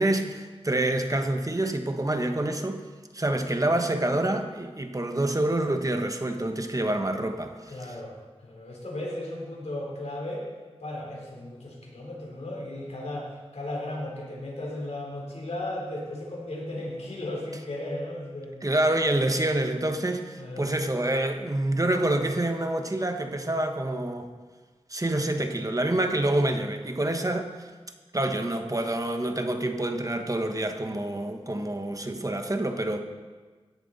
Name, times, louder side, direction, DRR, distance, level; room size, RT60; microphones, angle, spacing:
voice 1, 0.0-2.8 3.1-7.7 18.6-24.3 24.9-27.7 28.1-33.0, right 1 dB, 30° right, 5 dB, 1.2 m, -27 dB
voice 2, 7.7-10.4 10.8-18.6 20.4-20.7, left 1 dB, 85° left, -2 dB, 3.7 m, -35 dB
17.0 x 10.5 x 4.2 m, 1.4 s
wide cardioid pair, 55°, 11 cm